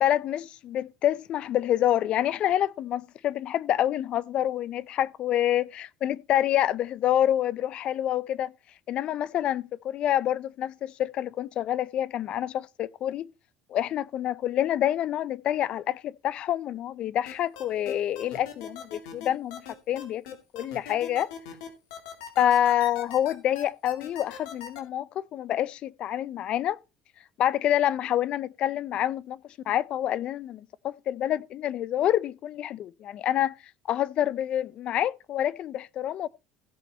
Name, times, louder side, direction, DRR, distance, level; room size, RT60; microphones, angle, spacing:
voice 1, 0.0-8.5 8.9-13.3 13.7-20.2 20.5-21.3 22.4-26.8 27.4-29.4 29.7-33.5 33.9-36.3, left 11 dB, 55° left, 0.6 m, -27 dB
sound 1, 17.3-24.8, left 8 dB, 90° left, 2.6 m, -40 dB
16.0 x 5.4 x 4.2 m
supercardioid pair, 95°, 2 cm